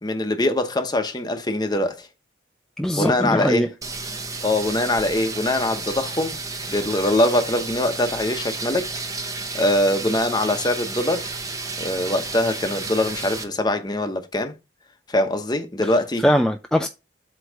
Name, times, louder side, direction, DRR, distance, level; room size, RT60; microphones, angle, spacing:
voice 1, 0.0-2.1 3.0-3.7 4.4-6.4 6.7-8.9 9.2-11.3 11.8-14.5 15.1-16.2, left 1 dB, 20° left, 0.9 m, -23 dB
voice 2, 2.8-3.7 16.2-16.9, equal, 5° left, 0.4 m, -20 dB
sound 1, 3.8-13.4, right 3 dB, 20° right, 0.8 m, -32 dB
8.1 x 3.1 x 6.3 m
head